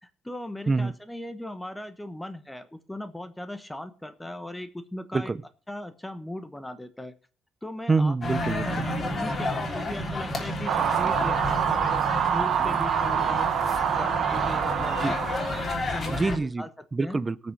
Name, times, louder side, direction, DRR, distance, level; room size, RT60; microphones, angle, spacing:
voice 1, 0.0-5.3 5.7-7.1 7.6-8.1 8.6-13.5 14.0-15.0 15.9-16.7 17.0-17.2, left 1 dB, 10° left, 1.1 m, -38 dB
voice 2, 5.1-5.4 7.9-8.8 15.0-15.2 16.1-17.5, right 3 dB, 25° right, 0.7 m, -26 dB
sound 1, 8.2-16.4, left 1 dB, 35° left, 3.4 m, -31 dB
sound 2, 10.7-15.7, right 9 dB, 70° right, 1.1 m, -26 dB
18.0 x 6.3 x 4.6 m
cardioid pair, 95°, 0 cm